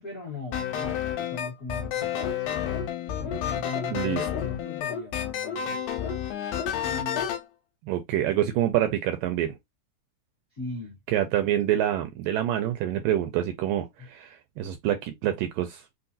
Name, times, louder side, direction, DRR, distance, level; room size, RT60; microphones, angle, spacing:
voice 1, 0.0-2.7 3.2-6.5 6.8-7.3 10.5-11.0 14.0-14.1, left 3 dB, 40° left, 1.2 m, -39 dB
sound 1, 0.5-7.4, left 10 dB, 85° left, 2.4 m, -30 dB
sound 2, 2.2-2.4 2.7-2.9 3.2-3.4 3.7-3.9 4.3-4.5 4.9-5.0 5.4-5.6 6.0-6.2 6.6-6.7 7.1-7.3, left 4 dB, 60° left, 1.8 m, -35 dB
voice 2, 7.8-9.6 11.1-15.8, right 12 dB, 80° right, 2.0 m, -26 dB
5.6 x 2.1 x 2.6 m
omnidirectional pair, 4.2 m